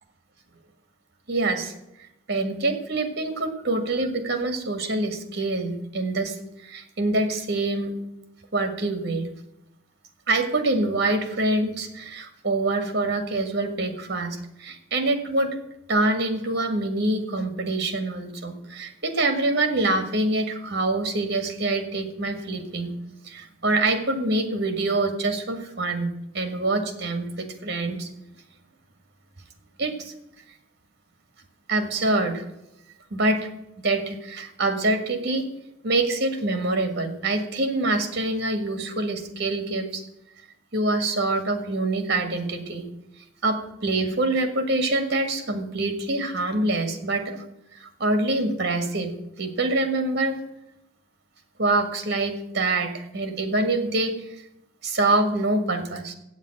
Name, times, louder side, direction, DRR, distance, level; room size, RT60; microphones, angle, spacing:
voice 1, 1.3-1.7 2.3-6.4 6.6-7.9 8.5-9.3 10.3-15.5 15.9-22.9 23.2-28.1 29.8-30.1 31.7-32.4 33.1-33.4 33.8-35.4 35.8-40.0 40.7-42.9 43.4-47.4 47.7-50.4 51.6-54.3 54.8-56.1, right 2 dB, 55° right, 7 dB, 1.8 m, -25 dB
8.5 x 7.3 x 8.8 m, 0.85 s
head